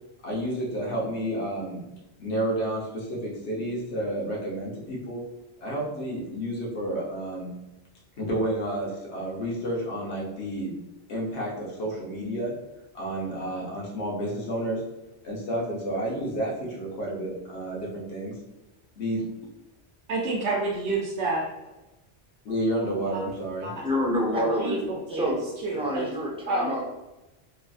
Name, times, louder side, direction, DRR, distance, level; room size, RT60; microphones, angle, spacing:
voice 1, 0.2-1.8 2.2-5.2 5.6-7.5 8.2-10.8 11.1-12.5 12.9-14.8 15.2-18.3 19.0-19.2 22.4-23.7, right 1 dB, 85° left, -3 dB, 1.2 m, -30 dB
voice 2, 20.1-21.5 23.1-23.2 23.6-23.7 24.3-25.2 25.6-26.0 26.5-26.7, right 2 dB, 90° right, -4 dB, 0.9 m, -28 dB
voice 3, 23.8-24.8 25.1-25.4 25.7-26.8, equal, 10° right, -4 dB, 0.4 m, -27 dB
3.1 x 2.4 x 2.4 m, 0.99 s
omnidirectional pair, 1.1 m